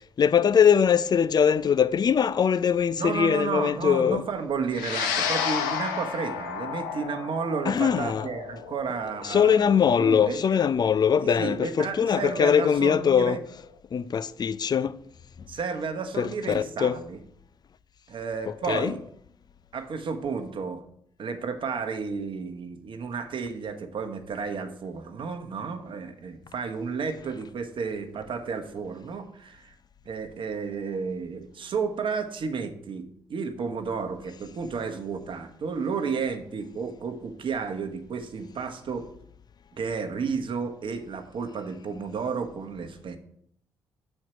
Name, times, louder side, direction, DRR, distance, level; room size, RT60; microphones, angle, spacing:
voice 1, 0.2-4.2 7.7-8.3 9.2-13.4 13.9-15.0 16.2-17.0 18.7-18.9, left 7 dB, 40° left, 0.4 m, -22 dB
voice 2, 3.0-10.4 11.2-13.4 15.5-17.2 18.1-19.0 19.7-20.8 21.2-29.7 30.1-39.1 39.7-43.2, right 5 dB, 55° right, 1.0 m, -32 dB
sound 1, 4.7-13.3, left 7 dB, 85° left, 0.7 m, -33 dB
6.3 x 4.5 x 6.0 m
hypercardioid pair, 45°, 10 cm